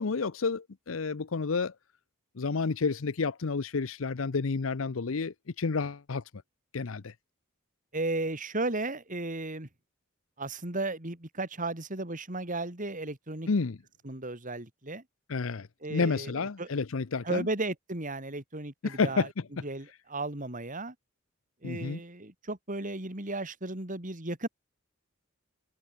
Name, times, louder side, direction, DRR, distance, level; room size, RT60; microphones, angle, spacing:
voice 1, 0.0-1.7 2.4-6.2 6.7-7.1 13.5-13.8 15.3-17.5 18.8-19.3 21.6-22.0, left 4 dB, 70° left, 0.7 m, -30 dB
voice 2, 7.9-9.7 10.4-13.5 14.0-15.0 15.8-16.7 17.2-19.3 19.6-20.9 21.6-24.5, right 2 dB, 40° right, 3.3 m, -35 dB
head